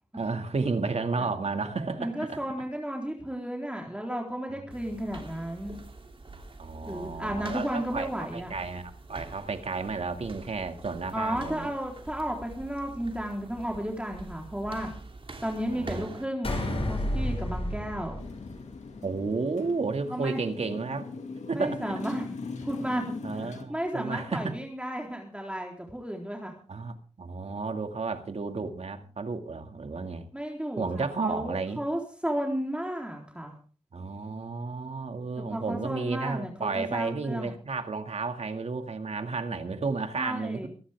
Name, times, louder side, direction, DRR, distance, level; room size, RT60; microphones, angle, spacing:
voice 1, 0.1-2.4 4.5-4.6 4.9-5.0 6.6-11.7 15.7-16.7 19.0-21.1 21.5-22.0 23.2-24.6 26.7-30.3 30.8-31.8 33.9-40.7, right 4 dB, 65° right, 7 dB, 2.2 m, -32 dB
voice 2, 2.0-5.8 6.9-8.5 11.1-14.9 15.4-16.6 16.9-18.2 20.1-20.4 21.5-22.3 22.6-26.5 30.3-33.5 35.4-37.5 40.2-40.7, equal, 10° right, 1 dB, 3.8 m, -33 dB
sound 1, 4.7-16.3, right 3 dB, 50° right, 3.1 m, -45 dB
sound 2, 16.4-19.0, left 1 dB, 55° left, 6.5 m, -31 dB
Motorcycle, 18.2-23.7, left 4 dB, 90° left, 2.3 m, -41 dB
23.5 x 11.5 x 3.6 m, 0.41 s
cardioid pair, 50°, 12 cm